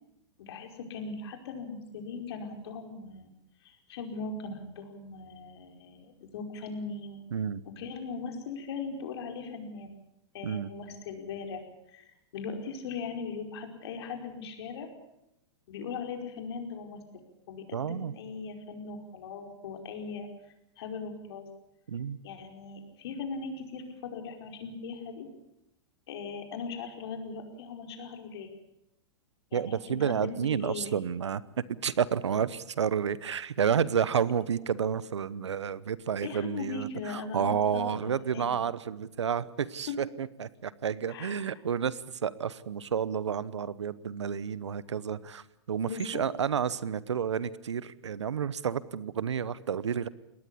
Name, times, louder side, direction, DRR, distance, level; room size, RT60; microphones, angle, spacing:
voice 1, 0.4-3.3 3.6-7.2 7.8-9.9 10.3-11.6 11.9-12.0 12.3-14.9 15.7-20.3 20.8-21.4 22.2-25.3 26.1-28.5 29.5-30.9 36.2-38.6 39.9-40.0 41.1-41.4 45.8-46.2, left 4 dB, 65° left, 5 dB, 5.0 m, -39 dB
voice 2, 17.7-18.1 21.9-22.2 29.5-31.4 31.8-50.1, right 7 dB, 85° right, 19 dB, 1.0 m, -30 dB
22.0 x 19.0 x 8.5 m, 0.83 s
hypercardioid pair, 120°, 14 cm